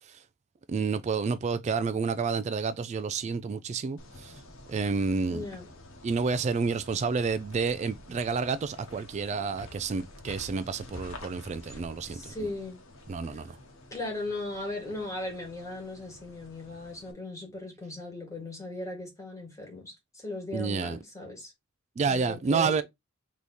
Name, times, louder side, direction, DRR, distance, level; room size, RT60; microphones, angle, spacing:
voice 1, 0.7-4.3 4.7-5.4 6.0-12.3 13.1-13.5 20.5-21.0 22.0-22.8, right 5 dB, 35° right, 0.3 m, -29 dB
sound 1, 4.0-17.1, left 1 dB, 80° left, 1.1 m, -49 dB
voice 2, 5.3-5.7 11.7-11.8 12.1-12.8 13.3-13.4 13.9-21.5 22.1-22.8, left 2 dB, 15° left, 1.9 m, -38 dB
3.5 x 3.1 x 4.0 m
head